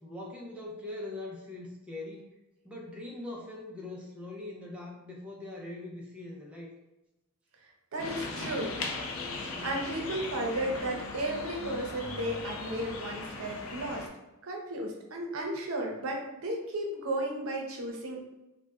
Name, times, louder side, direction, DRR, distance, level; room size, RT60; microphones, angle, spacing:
voice 1, 0.0-2.3 2.6-6.7, left 2 dB, 5° right, -3 dB, 0.4 m, -42 dB
voice 2, 7.9-8.7 9.6-14.1 14.4-18.2, right 1 dB, 70° right, 0 dB, 0.6 m, -34 dB
sound 1, 8.0-14.1, left 3 dB, 65° left, 0.4 m, -38 dB
3.9 x 2.1 x 2.3 m, 0.98 s
head